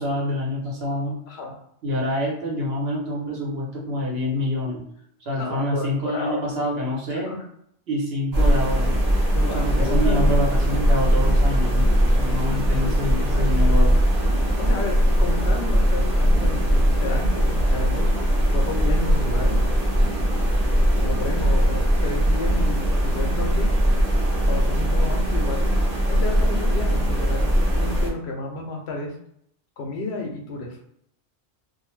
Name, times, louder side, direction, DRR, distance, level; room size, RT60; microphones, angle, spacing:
voice 1, 0.0-1.2 1.8-4.8 5.2-7.3 7.9-9.0 9.5-14.0, left 1 dB, 75° right, -3 dB, 1.1 m, -27 dB
voice 2, 5.4-6.4 7.1-7.4 9.3-10.3 12.9-13.0 13.3-13.5 14.6-18.1 18.5-19.6 21.0-23.7 24.5-25.8 26.1-29.1 29.8-30.8, left 2 dB, 85° left, 1 dB, 0.9 m, -32 dB
sound 1, 8.3-28.1, equal, 40° right, 0.8 m, -20 dB
2.5 x 2.1 x 3.1 m, 0.72 s
omnidirectional pair, 1.0 m